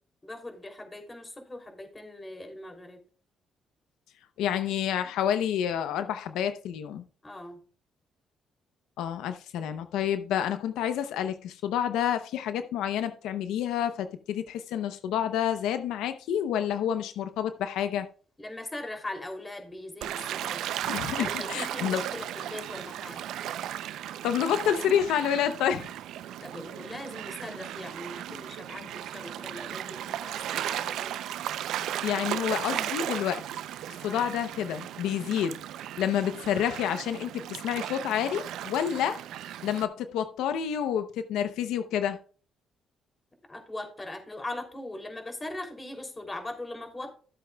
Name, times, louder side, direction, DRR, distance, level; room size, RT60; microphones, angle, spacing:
voice 1, 0.2-3.0 7.2-7.6 18.4-20.7 21.2-23.3 26.4-31.2 34.0-34.3 43.5-47.1, left 1 dB, 20° left, 2.9 m, -40 dB
voice 2, 4.4-7.0 9.0-18.1 20.8-22.0 24.2-25.9 28.3-28.4 32.0-33.4 34.0-35.6 36.0-39.2 39.6-42.2, left 9 dB, 90° left, 0.7 m, -29 dB
Gull seagull / Waves surf, 20.0-39.8, right 11 dB, 85° right, 0.5 m, -36 dB
14.5 x 7.9 x 2.3 m
cardioid pair, 90°, 0 cm